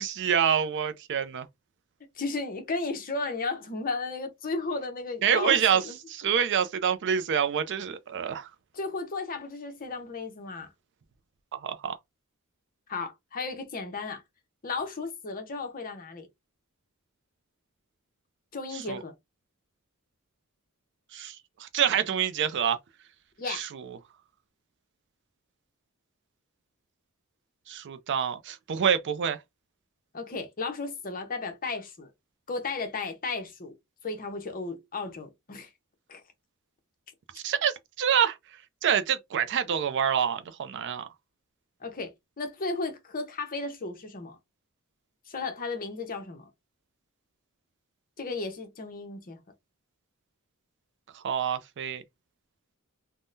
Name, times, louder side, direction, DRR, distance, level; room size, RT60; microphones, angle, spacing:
voice 1, 0.0-1.5 5.2-5.8 6.1-8.5 11.5-12.0 18.7-19.0 21.1-22.8 23.5-23.8 27.7-29.4 37.3-38.4 38.8-41.1 51.1-52.0, right 8 dB, 55° right, 0.4 m, -27 dB
voice 2, 2.2-6.0 8.7-10.7 12.9-14.2 14.6-16.3 18.5-19.1 23.4-23.7 30.1-32.1 32.5-33.7 34.0-35.7 36.1-36.2 41.8-44.4 45.3-46.5 48.2-49.4, left 3 dB, 40° left, 0.8 m, -34 dB
3.5 x 2.1 x 2.6 m
head